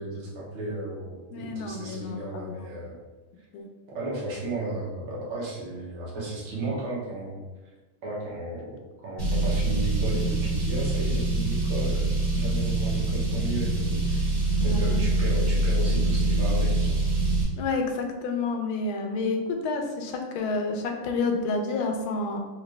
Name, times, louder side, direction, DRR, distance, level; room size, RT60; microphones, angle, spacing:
voice 1, 0.0-3.0 3.9-7.4 8.0-8.7 9.0-17.0, right 2 dB, 90° right, -5 dB, 2.0 m, -34 dB
voice 2, 1.3-2.7 3.5-3.7 14.6-15.0 17.6-22.4, left 3 dB, 80° left, 3 dB, 1.4 m, -29 dB
Car, 9.2-17.4, right 2 dB, 40° right, 1.8 m, -24 dB
5.0 x 2.7 x 3.2 m, 1.2 s
omnidirectional pair, 2.3 m